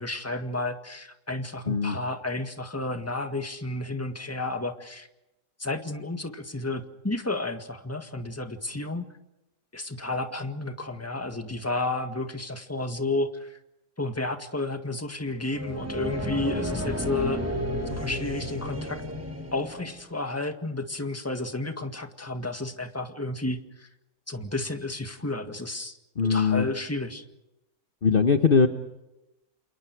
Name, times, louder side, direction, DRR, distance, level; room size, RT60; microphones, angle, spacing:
voice 1, 0.0-5.1 5.6-9.1 9.7-13.6 14.0-17.4 17.9-19.0 19.5-23.6 24.3-26.0 26.2-27.2, left 2 dB, 10° left, 6 dB, 1.7 m, -31 dB
sound 1, 15.4-20.0, equal, 10° right, 3.5 m, -32 dB
voice 2, 26.2-26.6 28.0-28.7, left 5 dB, 35° left, 8 dB, 1.2 m, -21 dB
29.0 x 28.5 x 4.7 m, 0.92 s
omnidirectional pair, 1.8 m